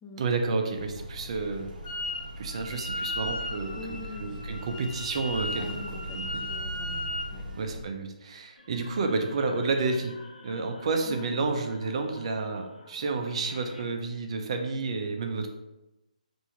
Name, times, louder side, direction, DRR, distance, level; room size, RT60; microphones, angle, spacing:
voice 1, 0.2-1.7 2.4-3.8 4.2-5.8 6.1-6.4 7.6-10.1 10.4-15.5, right 3 dB, 45° right, 4 dB, 0.5 m, -30 dB
sound 1, 0.7-7.8, equal, 80° right, 0.7 m, -40 dB
Wind instrument woodwind instrument, 1.8-2.2 2.5-7.3, left 1 dB, 35° left, 0.8 m, -36 dB
voice 2, 3.8-4.4 5.6-7.5 11.0-11.3, left 3 dB, 10° left, 0 dB, 0.3 m, -44 dB
sound 2, 8.5-13.8, left 2 dB, 60° left, 0.9 m, -49 dB
4.5 x 2.6 x 2.9 m, 0.97 s
hypercardioid pair, 155°, 5 cm